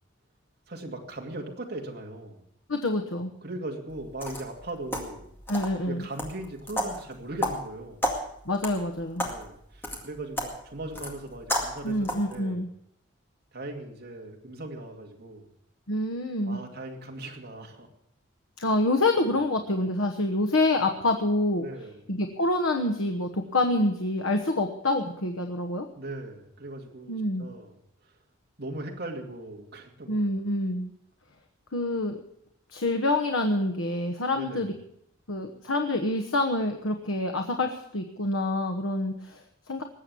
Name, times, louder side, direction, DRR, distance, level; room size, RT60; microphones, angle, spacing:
voice 1, 0.7-2.4 3.4-5.4 5.9-8.0 9.2-12.0 12.3-12.6 13.5-15.5 16.5-17.9 19.2-19.4 21.6-22.0 25.9-27.8 28.6-30.4 34.3-34.7, right 2 dB, 50° right, 0 dB, 2.3 m, -39 dB
voice 2, 2.7-3.3 5.5-6.1 8.4-9.3 11.8-12.7 15.9-16.6 18.6-21.6 22.1-25.9 27.1-27.5 30.1-30.9 31.7-32.2 32.7-34.7 35.3-39.8, left 2 dB, 80° left, 5 dB, 1.2 m, -27 dB
sound 1, 3.9-12.4, left 1 dB, 10° left, 2.1 m, -34 dB
20.0 x 7.9 x 7.0 m, 0.72 s
head